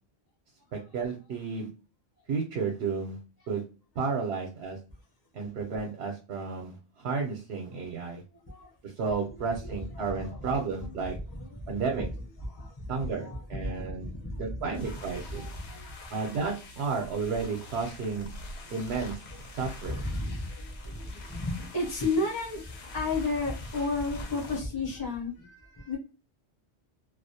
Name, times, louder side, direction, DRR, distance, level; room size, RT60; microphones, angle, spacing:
voice 1, 0.7-1.7 2.3-3.2 3.5-3.6 4.0-4.8 5.3-8.2 8.8-11.2 11.7-12.1 12.9-15.4 16.1-18.3 18.7-19.2 19.5-20.1, right 4 dB, 75° right, 1 dB, 0.9 m, -32 dB
voice 2, 8.3-8.7 9.3-10.4 10.8-11.8 12.5-14.5 14.8-16.3 19.3-26.0, left 2 dB, 25° left, -4 dB, 0.6 m, -34 dB
sound 1, 14.7-24.6, left 2 dB, 75° left, 0.9 m, -45 dB
2.3 x 2.1 x 2.7 m, 0.34 s
omnidirectional pair, 1.1 m